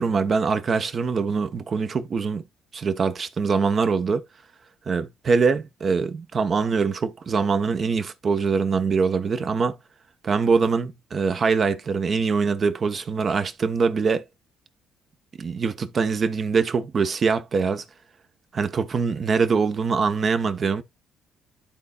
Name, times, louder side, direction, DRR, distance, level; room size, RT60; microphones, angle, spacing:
voice 1, 0.0-2.4 2.7-4.2 4.9-9.8 10.2-14.2 15.4-17.8 18.5-20.8, right 5 dB, 45° right, 1.0 m, -23 dB
12.0 x 4.3 x 2.4 m
hypercardioid pair, 60°, 0 cm